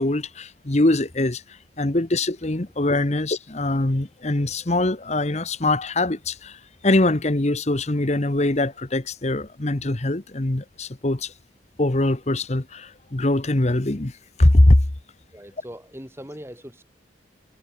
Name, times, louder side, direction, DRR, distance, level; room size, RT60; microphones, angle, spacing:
voice 1, 0.0-1.4 1.8-11.3 11.8-14.1 14.4-14.8, left 2 dB, 35° left, 1.1 m, -22 dB
voice 2, 15.3-16.8, equal, 15° right, 6.9 m, -40 dB
head